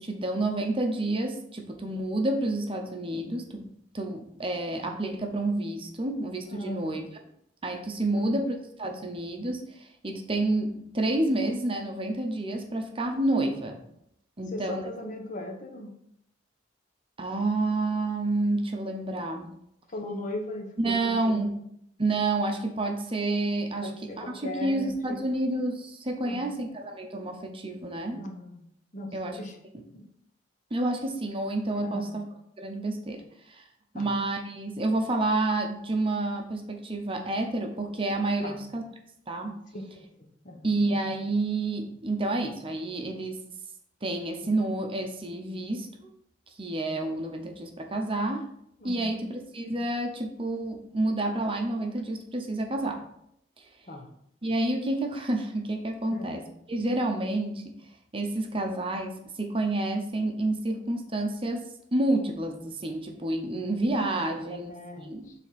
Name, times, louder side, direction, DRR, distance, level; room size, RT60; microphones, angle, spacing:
voice 1, 0.0-3.7 3.9-7.0 7.6-13.8 14.4-14.8 17.2-19.5 20.8-21.5 22.0-23.9 24.2-28.2 29.1-29.4 30.7-32.2 32.6-33.2 33.5-33.6 33.9-38.8 39.3-39.6 40.6-43.4 44.0-46.1 46.6-48.5 48.8-53.0 54.4-57.7 58.1-64.8 65.0-65.3, right 2 dB, 30° right, 4 dB, 0.8 m, -29 dB
voice 2, 6.5-6.9 8.1-8.4 14.5-15.9 19.9-21.5 23.8-25.2 26.2-26.5 28.2-28.6 28.9-29.6 29.9-30.0 31.8-32.2 33.9-34.1 38.4-38.6 39.7-40.7 48.8-49.3 53.9-54.1 56.1-56.3 64.5-65.3, left 1 dB, 45° left, 3 dB, 1.0 m, -38 dB
7.0 x 3.6 x 4.1 m, 0.73 s
head